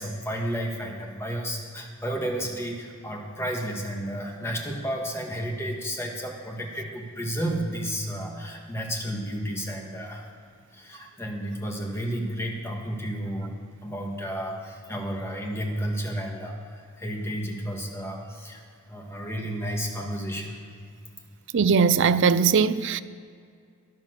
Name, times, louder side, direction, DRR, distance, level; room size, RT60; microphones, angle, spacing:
voice 1, 0.0-10.3 10.7-13.5 13.8-18.6 18.9-20.6, equal, 10° left, 1.8 m, -32 dB
voice 2, 21.5-23.0, right 6 dB, 55° right, 0.5 m, -20 dB
12.5 x 10.5 x 6.6 m
head